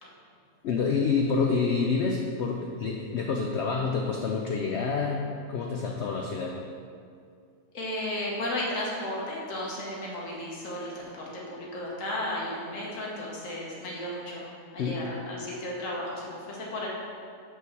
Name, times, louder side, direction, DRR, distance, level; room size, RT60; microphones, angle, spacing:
voice 1, 0.6-6.6 14.8-15.0, left 5 dB, 80° left, 1 dB, 0.6 m, -28 dB
voice 2, 7.7-14.4 14.7-16.9, left 1 dB, 55° left, -4 dB, 1.6 m, -34 dB
5.5 x 3.8 x 6.0 m, 2.3 s
omnidirectional pair, 1.7 m